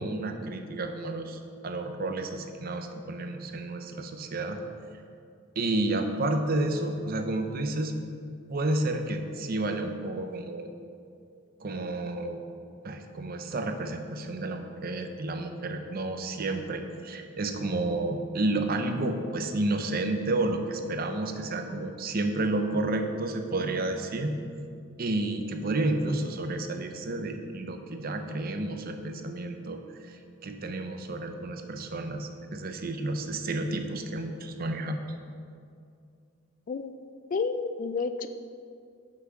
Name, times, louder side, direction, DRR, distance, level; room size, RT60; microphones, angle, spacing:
voice 1, 0.0-4.6 5.6-8.0 8.5-10.7 11.6-12.4 12.8-24.4 25.0-30.2 30.4-35.0, right 2 dB, 45° right, 6 dB, 0.6 m, -31 dB
voice 2, 37.3-38.3, left 4 dB, 40° left, 10 dB, 0.3 m, -30 dB
6.1 x 5.9 x 6.2 m, 2.4 s
head